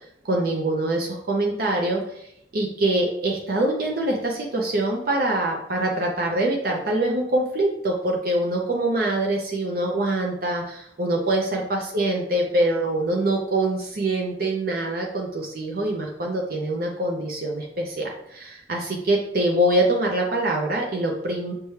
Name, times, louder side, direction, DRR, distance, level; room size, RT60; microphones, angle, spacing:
voice 1, 0.3-21.5, right 1 dB, 55° right, 0 dB, 0.6 m, -24 dB
6.6 x 2.2 x 3.1 m, 0.74 s
head